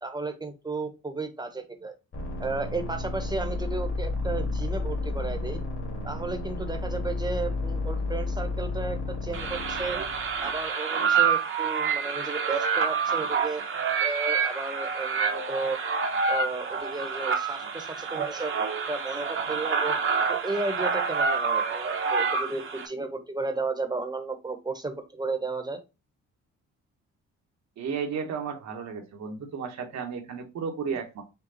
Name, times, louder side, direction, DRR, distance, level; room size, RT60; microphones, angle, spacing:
voice 1, 0.0-1.9 2.4-5.6 6.0-10.0 10.4-13.6 14.0-15.8 16.3-18.5 18.9-19.9 20.3-25.8, right 3 dB, 15° right, 6 dB, 1.1 m, -33 dB
sound 1, 2.1-10.6, left 2 dB, 45° left, 2.1 m, -31 dB
sound 2, 9.3-22.9, right 5 dB, 45° right, 1.0 m, -27 dB
voice 2, 27.8-31.2, right 6 dB, 65° right, 4 dB, 1.2 m, -33 dB
5.8 x 2.3 x 4.0 m, 0.27 s
cardioid pair, 90°, 30 cm